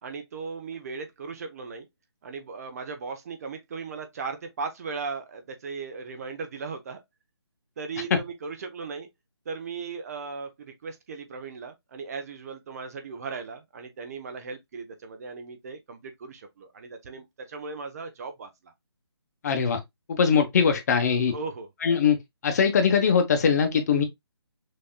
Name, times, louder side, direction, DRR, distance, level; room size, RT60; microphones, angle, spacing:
voice 1, 0.0-1.9 2.2-7.0 7.8-9.1 9.4-18.7 21.3-21.7, right 4 dB, 35° right, 0.8 m, -37 dB
voice 2, 19.4-19.8 20.1-21.3 21.8-22.2 22.4-24.0, left 6 dB, 35° left, 0.9 m, -21 dB
6.2 x 2.9 x 2.2 m
figure-of-eight pair, 150°, 14 cm